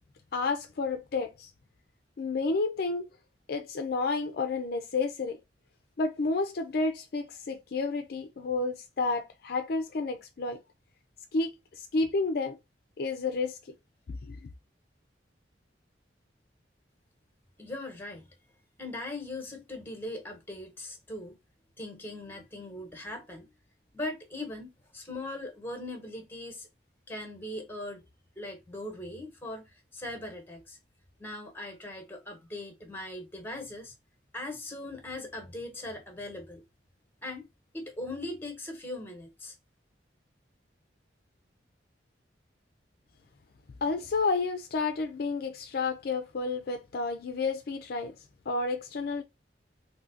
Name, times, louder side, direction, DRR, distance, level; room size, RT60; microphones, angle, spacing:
voice 1, 0.3-1.5 2.2-3.0 3.5-5.4 6.0-10.6 11.3-12.6 13.0-13.6 14.1-14.5 43.8-48.1 48.5-49.2, left 3 dB, 55° left, 0.4 m, -30 dB
voice 2, 17.6-18.3 18.8-21.4 21.8-23.5 23.9-26.7 27.1-28.0 28.4-30.8 31.2-33.9 34.3-36.6 37.2-37.5 37.7-39.5, left 1 dB, 10° left, 1.1 m, -40 dB
3.7 x 2.7 x 2.5 m
head